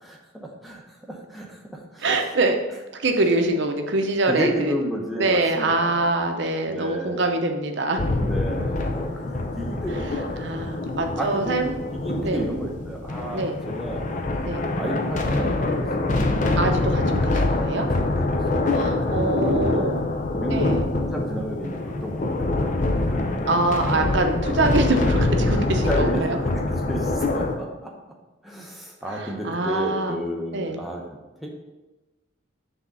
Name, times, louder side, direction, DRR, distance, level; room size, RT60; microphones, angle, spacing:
voice 1, 0.0-2.1 4.3-6.2 6.7-7.2 8.2-10.4 11.2-14.0 14.8-15.9 17.8-18.7 19.0-19.9 20.4-20.6 21.0-23.3 25.8-27.9 28.4-31.0 31.4-31.5, equal, ahead, -1 dB, 0.8 m, -32 dB
voice 2, 2.0-2.6 2.9-4.7 5.2-8.0 10.4-11.7 12.2-12.4 13.3-13.6 14.4-14.6 16.6-17.9 18.7-20.1 20.5-20.8 23.5-26.4 29.1-30.2 30.5-30.8, right 2 dB, 55° right, 4 dB, 0.7 m, -24 dB
sound 1, 8.0-27.6, left 2 dB, 40° left, 0.5 m, -25 dB
6.1 x 3.6 x 5.5 m, 1.1 s
head